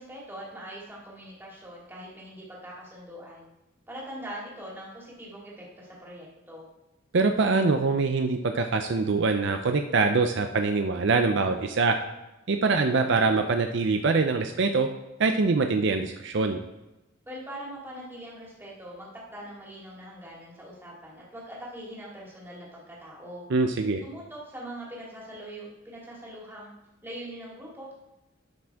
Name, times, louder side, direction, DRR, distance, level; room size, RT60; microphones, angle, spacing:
voice 1, 0.0-3.5 3.9-6.7 17.3-23.4 24.0-26.7 27.0-27.9, right 1 dB, 10° right, -5 dB, 2.6 m, -42 dB
voice 2, 7.1-12.0 12.5-14.9 15.2-16.6 23.5-24.0, right 4 dB, 60° right, 6 dB, 0.5 m, -24 dB
11.5 x 6.1 x 3.5 m, 0.98 s
head